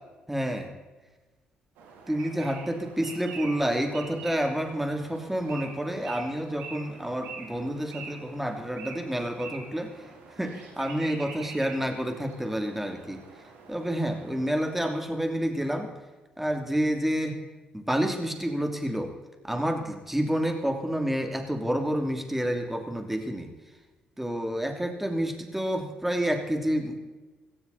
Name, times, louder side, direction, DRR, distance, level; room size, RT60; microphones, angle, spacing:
voice 1, 0.3-0.7 2.1-10.0 10.4-13.2 13.7-15.9 16.4-17.4 17.7-19.1 19.4-23.5 24.2-27.0, equal, 5° right, 4 dB, 2.9 m, -29 dB
sound 1, 1.8-14.7, right 4 dB, 85° right, 3.2 m, -45 dB
17.0 x 15.5 x 4.1 m, 1.2 s
supercardioid pair, 70°, 3 cm